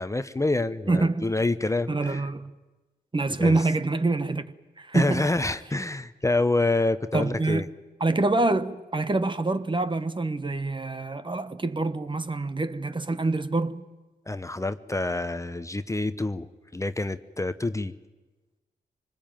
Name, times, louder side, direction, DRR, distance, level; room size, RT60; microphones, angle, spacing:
voice 1, 0.0-2.2 3.4-3.7 4.9-7.7 14.3-17.9, left 2 dB, 15° left, 1.0 m, -27 dB
voice 2, 0.9-1.3 1.9-2.5 3.1-4.4 4.8-5.2 7.1-7.6 8.0-13.8, right 2 dB, 25° right, 1.2 m, -26 dB
24.5 x 20.0 x 9.1 m
cardioid pair, 55°, 18 cm